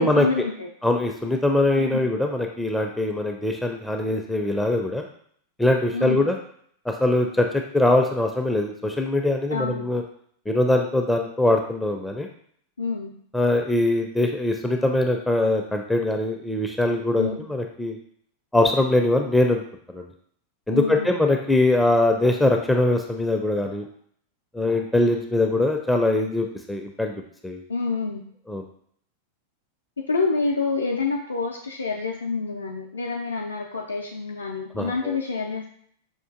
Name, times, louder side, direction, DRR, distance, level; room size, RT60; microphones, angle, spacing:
voice 1, 0.0-0.7 1.8-2.1 5.9-6.3 9.5-9.8 12.8-13.1 17.1-17.5 20.7-21.2 27.7-28.2 30.0-35.7, left 4 dB, 75° left, 0 dB, 0.4 m, -27 dB
voice 2, 0.8-5.1 5.6-6.4 6.9-10.0 10.5-12.3 13.3-18.0 18.5-19.6 19.9-20.1 20.7-23.9 24.5-27.6 28.5-28.6 34.8-35.2, left 2 dB, 5° left, 3 dB, 0.4 m, -22 dB
5.2 x 2.4 x 2.4 m, 0.63 s
figure-of-eight pair, 90°, 0 cm